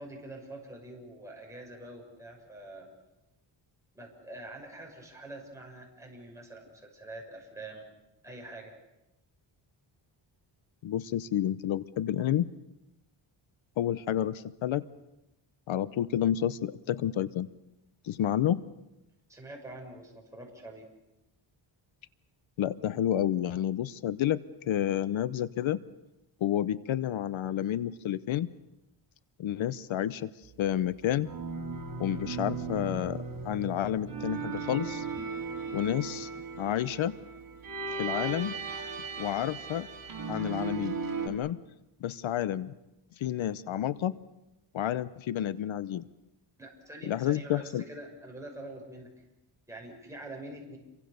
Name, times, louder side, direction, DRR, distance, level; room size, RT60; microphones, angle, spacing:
voice 1, 0.0-2.9 3.9-7.9 8.2-8.7 19.3-20.9 46.6-49.1 49.7-50.8, right 1 dB, 5° right, -1 dB, 6.3 m, -45 dB
voice 2, 10.8-12.5 13.8-14.8 15.7-17.5 18.0-18.6 22.6-24.4 24.7-25.8 26.4-28.5 29.4-30.3 30.6-31.3 32.0-35.1 35.7-36.3 36.6-37.2 38.0-38.5 39.2-39.9 40.3-41.0 41.2-41.6 42.0-42.7 43.2-44.2 44.7-46.0 47.1-47.8, left 11 dB, 75° left, 16 dB, 0.9 m, -30 dB
sound 1, 31.2-41.3, right 4 dB, 45° right, 4.1 m, -37 dB
29.0 x 24.0 x 6.8 m, 0.95 s
wide cardioid pair, 140°, 47 cm